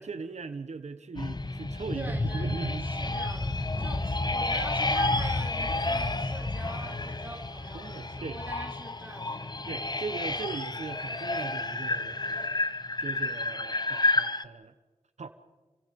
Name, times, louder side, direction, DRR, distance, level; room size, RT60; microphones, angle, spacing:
voice 1, 0.0-2.9 7.7-8.4 9.7-12.2 13.0-14.7 15.2-15.3, right 4 dB, 80° right, 1.2 m, -38 dB
sound 1, 1.2-14.4, left 2 dB, 40° left, 1.2 m, -30 dB
voice 2, 1.9-9.5, right 1 dB, 15° right, 4.7 m, -44 dB
29.5 x 24.0 x 5.4 m
cardioid pair, 40°, 11 cm